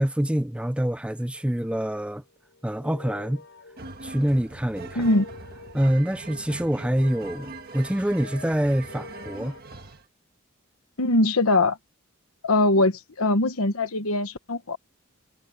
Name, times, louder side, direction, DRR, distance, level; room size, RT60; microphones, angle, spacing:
voice 1, 0.0-2.2 2.6-3.4 4.0-5.1 5.7-9.5, equal, 5° right, 0.5 m, -25 dB
sound 1, 1.6-9.6, left 3 dB, 60° left, 6.0 m, -47 dB
sound 2, 3.8-10.0, right 3 dB, 45° right, 1.6 m, -42 dB
voice 2, 5.0-5.3 11.0-11.8 12.4-14.8, left 2 dB, 90° left, 1.3 m, -22 dB
head